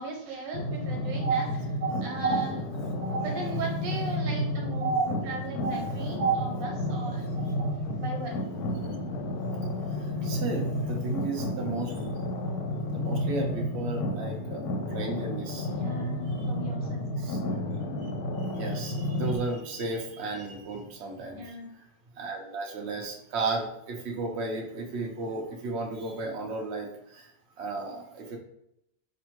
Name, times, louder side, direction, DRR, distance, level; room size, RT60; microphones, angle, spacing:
voice 1, 0.0-1.5 2.0-2.6 3.2-7.2 8.0-8.4 15.7-17.4 21.3-21.7, right 2 dB, 85° right, 0 dB, 1.6 m, -38 dB
sound 1, 0.5-19.4, left 1 dB, 70° left, 1.0 m, -31 dB
voice 2, 1.8-2.3 3.0-3.4 4.8-5.0 5.6-5.7 6.2-6.5 8.8-9.0 9.6-12.0 12.9-14.6 14.9-15.7 16.4-16.5 17.2-17.4 18.0-18.1 18.4-21.8 22.2-27.3 27.6-28.4, right 3 dB, 50° right, 1 dB, 0.8 m, -33 dB
5.0 x 2.6 x 3.0 m, 0.78 s
omnidirectional pair, 1.9 m